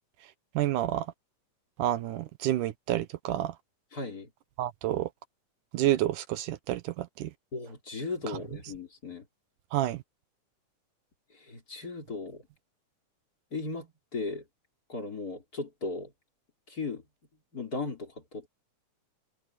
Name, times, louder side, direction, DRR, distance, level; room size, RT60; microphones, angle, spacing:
voice 1, 0.6-1.1 1.8-3.5 4.6-5.1 5.7-7.3 9.7-10.0, right 13 dB, 80° right, 2.4 m, -29 dB
voice 2, 3.9-4.3 7.5-9.3 11.3-12.4 13.5-14.4 14.9-16.1 16.7-17.0 17.5-18.5, left 3 dB, 30° left, 3.8 m, -37 dB
omnidirectional pair, 3.6 m